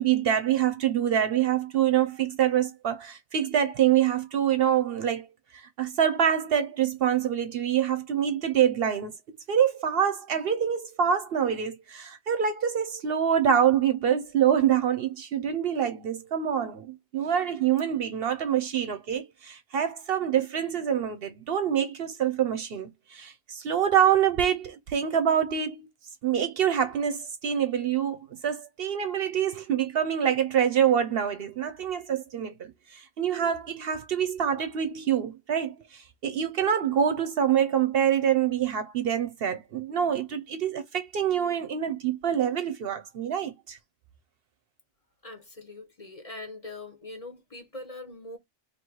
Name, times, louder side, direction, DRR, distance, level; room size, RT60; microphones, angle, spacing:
voice 1, 0.0-5.3 5.5-25.9 26.2-43.8, right 9 dB, 65° right, 0.7 m, -26 dB
voice 2, 45.2-48.4, left 2 dB, 35° left, 1.1 m, -42 dB
2.9 x 2.8 x 4.5 m
omnidirectional pair, 1.2 m